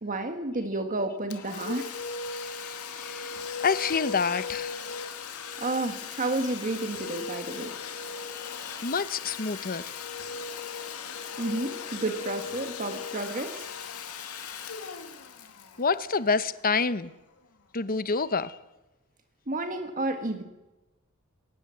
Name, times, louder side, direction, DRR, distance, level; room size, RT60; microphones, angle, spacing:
voice 1, 0.0-1.9 5.6-7.7 11.4-13.7 19.5-20.4, right 2 dB, 35° right, 1.8 m, -31 dB
Domestic sounds home sounds, 1.3-16.8, left 6 dB, 80° left, 2.2 m, -38 dB
voice 2, 2.6-3.4 3.6-4.8 8.3-9.8 14.2-14.7 15.8-17.1 17.7-18.6, left 4 dB, 40° left, 1.0 m, -28 dB
21.5 x 19.0 x 7.8 m
head